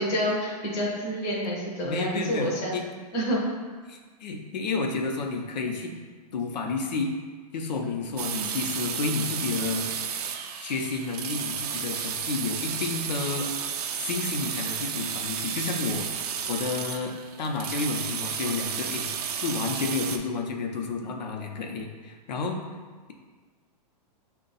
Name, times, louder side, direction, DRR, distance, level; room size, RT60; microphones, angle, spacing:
voice 1, 0.0-2.7 3.1-3.4 8.3-8.4, equal, 15° left, -5 dB, 0.5 m, -28 dB
voice 2, 1.8-2.8 3.9-5.9 6.3-7.1 7.5-9.9 10.6-13.5 14.0-16.1 16.5-17.1 17.4-22.6, left 4 dB, 85° left, 2 dB, 0.7 m, -31 dB
sound 1, 8.2-20.2, right 7 dB, 65° right, 0.4 m, -32 dB
5.3 x 2.3 x 4.0 m, 1.4 s
hypercardioid pair, 170°, 21 cm